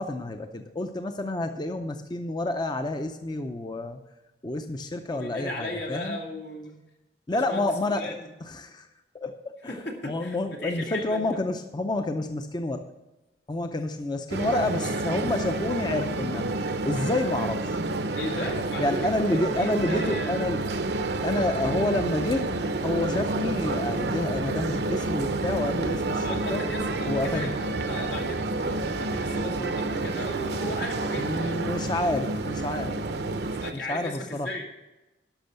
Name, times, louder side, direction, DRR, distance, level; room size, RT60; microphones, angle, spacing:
voice 1, 0.0-4.0 4.4-6.2 7.3-8.9 9.1-12.9 13.5-17.8 18.8-20.6 21.2-22.5 22.8-26.6 27.1-27.5 31.1-33.0 33.7-34.5, left 2 dB, 25° left, 7 dB, 0.5 m, -29 dB
voice 2, 5.1-6.7 7.3-8.3 9.7-11.2 18.2-20.4 26.2-31.6 33.6-34.7, equal, 85° left, 0 dB, 2.3 m, -36 dB
sound 1, 14.3-33.7, right 2 dB, 65° right, 0.7 m, -29 dB
12.0 x 6.1 x 6.7 m, 1.0 s
head